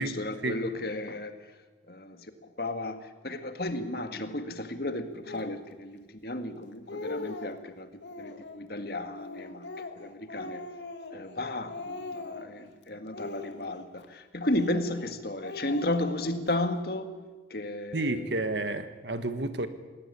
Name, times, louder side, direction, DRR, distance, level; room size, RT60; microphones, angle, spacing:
voice 1, 0.0-1.4 1.9-2.2 2.6-7.9 8.2-10.6 11.1-17.1 17.5-18.2, left 1 dB, 55° left, 8 dB, 1.9 m, -33 dB
Speech, 5.3-5.6 6.3-6.4 6.7-7.6 8.0-8.6 9.1-11.4 11.7-12.6 13.1-14.1 14.4-15.1 15.4-16.6, left 3 dB, 70° left, 2.2 m, -40 dB
voice 2, 17.9-19.7, right 2 dB, 70° right, 10 dB, 1.7 m, -30 dB
19.5 x 18.5 x 9.9 m, 1.3 s
head